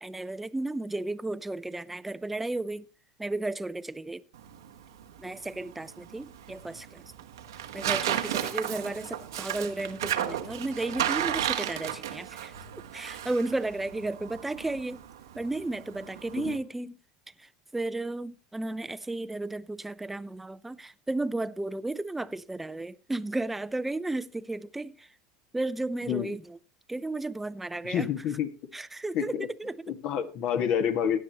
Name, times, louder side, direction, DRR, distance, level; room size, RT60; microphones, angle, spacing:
voice 1, 0.0-2.8 3.2-4.2 5.2-7.0 7.7-12.5 12.9-15.0 15.4-16.9 17.7-25.1 25.5-26.4 26.9-28.1 28.7-29.7, right 2 dB, 10° right, 0.6 m, -33 dB
Tearing, 4.3-16.6, right 11 dB, 90° right, 1.2 m, -34 dB
voice 2, 27.8-28.5 29.1-29.5 29.9-31.2, left 8 dB, 55° left, 1.7 m, -28 dB
17.0 x 10.0 x 3.0 m
hypercardioid pair, 100°, 2 cm